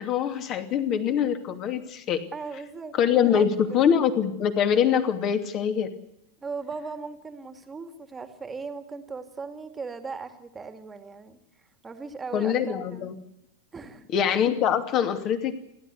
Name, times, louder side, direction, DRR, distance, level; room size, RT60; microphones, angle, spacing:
voice 1, 0.0-2.2 2.9-5.9 12.3-13.2 14.1-15.6, left 8 dB, 35° left, 7 dB, 2.7 m, -24 dB
voice 2, 2.3-3.9 6.4-11.4 11.8-13.1 13.7-14.1, right 4 dB, 15° right, 8 dB, 2.3 m, -38 dB
29.5 x 13.0 x 8.3 m, 0.79 s
figure-of-eight pair, 90°, 0 cm